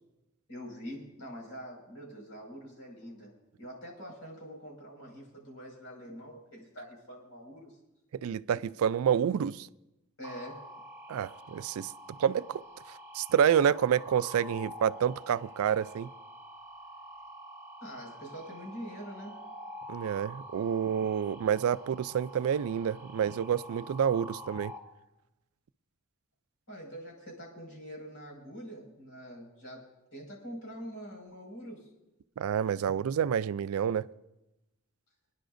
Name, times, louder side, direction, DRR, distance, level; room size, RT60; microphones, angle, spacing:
voice 1, 0.5-3.3 3.6-7.8 10.2-10.6 17.8-19.4 26.7-31.9, equal, 70° left, 5.3 m, -45 dB
voice 2, 8.2-9.7 11.1-11.9 12.2-12.6 13.1-16.1 19.9-24.7 32.4-34.1, right 8 dB, 80° right, 0.3 m, -28 dB
sound 1, 10.2-24.8, equal, 15° right, 1.2 m, -47 dB
27.0 x 10.0 x 2.6 m
head